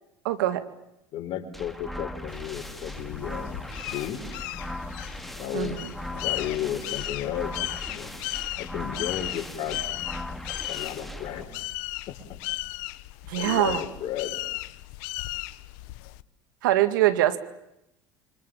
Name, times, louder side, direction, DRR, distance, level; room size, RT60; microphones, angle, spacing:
voice 1, 0.2-0.6 5.5-5.9 13.3-13.8 16.6-17.4, right 14 dB, 85° right, 11 dB, 2.2 m, -23 dB
voice 2, 1.1-4.2 5.4-5.8 6.1-7.5 7.9-8.1 8.6-9.8 10.7-11.5 12.1-12.2 13.4-14.4, left 10 dB, 55° left, 4 dB, 5.4 m, -33 dB
sound 1, 1.5-11.4, left 1 dB, ahead, 2.6 m, -38 dB
sound 2, 2.3-16.2, left 20 dB, 75° left, 1.0 m, -36 dB
29.5 x 25.5 x 7.2 m, 0.85 s
supercardioid pair, 90°, 10 cm